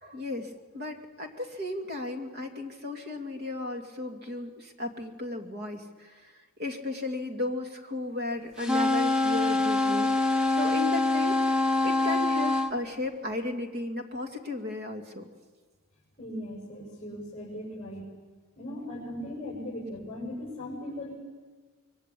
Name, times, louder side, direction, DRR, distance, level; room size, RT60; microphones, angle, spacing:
voice 1, 0.0-15.3, left 2 dB, 45° right, 4 dB, 2.3 m, -35 dB
sound 1, 8.6-12.7, left 2 dB, 5° right, 0.9 m, -25 dB
voice 2, 16.2-18.1 18.6-21.1, left 1 dB, 25° left, -4 dB, 6.6 m, -38 dB
26.0 x 22.5 x 8.4 m, 1.4 s
head